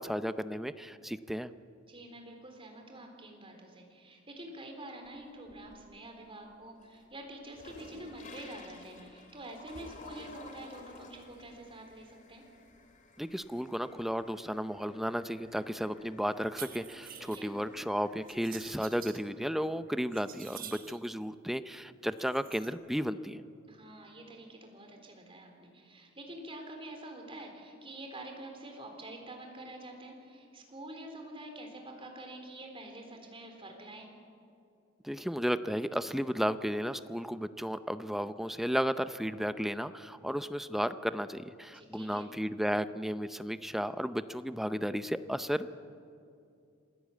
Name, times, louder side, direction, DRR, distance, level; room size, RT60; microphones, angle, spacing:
voice 1, 0.0-1.5 13.2-23.4 35.0-45.7, equal, ahead, 12 dB, 0.6 m, -34 dB
voice 2, 1.8-12.4 17.1-17.5 23.7-34.1 41.7-42.3, right 1 dB, 30° right, 3 dB, 3.8 m, -47 dB
sound 1, 5.0-6.0 6.4-18.8, left 2 dB, 40° left, 2.6 m, -54 dB
sound 2, 16.4-17.5 18.3-19.2 19.7-21.1 22.1-22.7, right 10 dB, 45° right, 1.2 m, -48 dB
26.5 x 15.5 x 8.4 m, 2.5 s
head